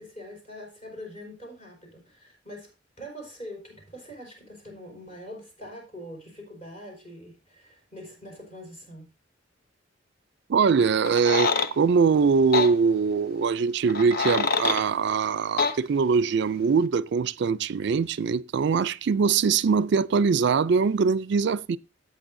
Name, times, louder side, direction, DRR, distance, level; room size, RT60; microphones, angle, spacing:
voice 1, 0.0-9.1, equal, 35° left, 5.0 m, -43 dB
voice 2, 10.5-21.8, right 5 dB, 65° right, 0.4 m, -22 dB
sound 1, 11.0-11.7 12.5-12.7 13.9-14.8 15.6-15.8, left 4 dB, 55° left, 0.8 m, -25 dB
15.0 x 8.6 x 2.6 m
head